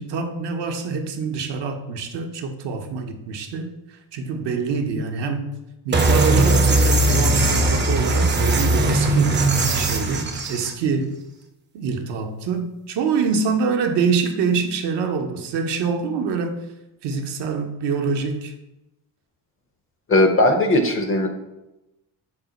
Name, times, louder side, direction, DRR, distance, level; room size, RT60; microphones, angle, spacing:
voice 1, 0.0-3.7 4.1-5.6 5.8-9.5 9.7-11.1 11.7-16.7 17.0-18.5, right 5 dB, 65° right, 5 dB, 0.7 m, -25 dB
sound 1, 5.9-10.7, right 2 dB, 25° right, 0.5 m, -19 dB
voice 2, 20.1-21.3, left 2 dB, 30° left, 5 dB, 0.5 m, -18 dB
4.0 x 2.0 x 3.9 m, 0.96 s
supercardioid pair, 65°, 46 cm